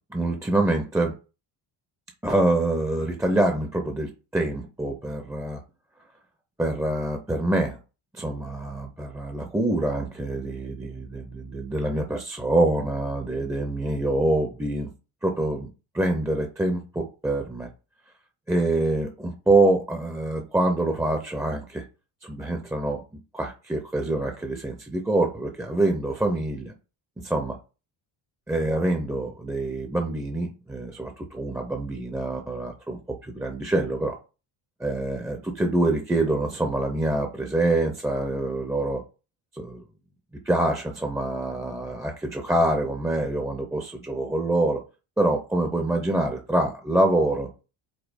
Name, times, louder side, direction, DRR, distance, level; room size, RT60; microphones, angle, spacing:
voice 1, 0.1-1.1 2.2-5.6 6.6-7.8 8.1-14.9 15.2-15.7 15.9-17.7 18.5-21.8 22.2-23.0 23.3-26.7 27.2-27.6 28.5-34.2 34.8-39.0 39.5-39.8 40.5-44.8 45.2-47.5, right 2 dB, 5° right, 0.5 m, -25 dB
5.2 x 3.9 x 4.9 m
cardioid pair, 170°, 48 cm